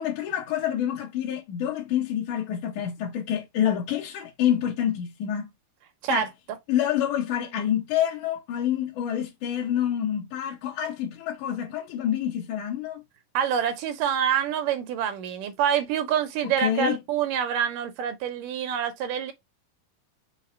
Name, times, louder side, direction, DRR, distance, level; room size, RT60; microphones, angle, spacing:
voice 1, 0.0-5.5 6.1-6.3 6.7-13.0 16.6-17.0, left 10 dB, 70° left, 2.2 m, -27 dB
voice 2, 13.3-19.3, right 8 dB, 75° right, 2.3 m, -26 dB
5.8 x 2.0 x 4.2 m
omnidirectional pair, 3.9 m